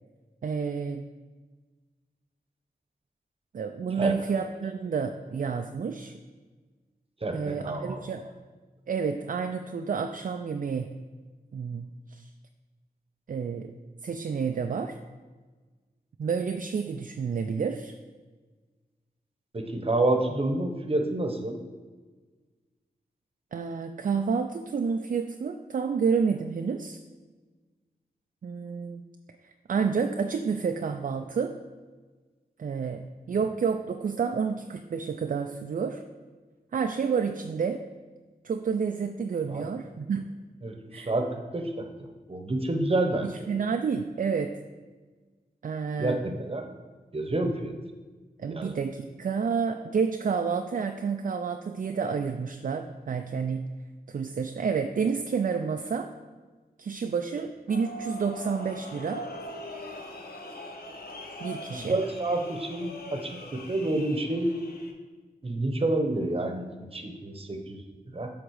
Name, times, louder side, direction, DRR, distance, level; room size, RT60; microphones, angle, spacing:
voice 1, 0.4-1.1 3.5-6.1 7.3-8.2 8.9-10.9 11.5-12.3 13.3-13.7 14.0-15.0 16.2-17.9 23.5-27.0 28.4-29.0 29.4-31.6 32.6-36.0 36.7-37.8 38.4-40.3 40.9-41.1 43.2-44.6 45.6-46.2 48.4-53.6 54.1-56.1 56.8-59.2 61.4-62.0, right 6 dB, 55° right, 6 dB, 0.4 m, -29 dB
voice 2, 7.2-8.0 19.5-21.6 33.3-33.4 39.5-39.7 40.6-41.7 42.0-43.3 46.0-46.7 47.1-47.7 48.5-48.7 61.7-64.5 65.4-68.3, right 2 dB, 35° right, 5 dB, 1.0 m, -29 dB
sound 1, 57.7-64.9, left 1 dB, 75° left, 0.9 m, -41 dB
7.8 x 3.6 x 6.4 m, 1.4 s
wide cardioid pair, 80°, 16 cm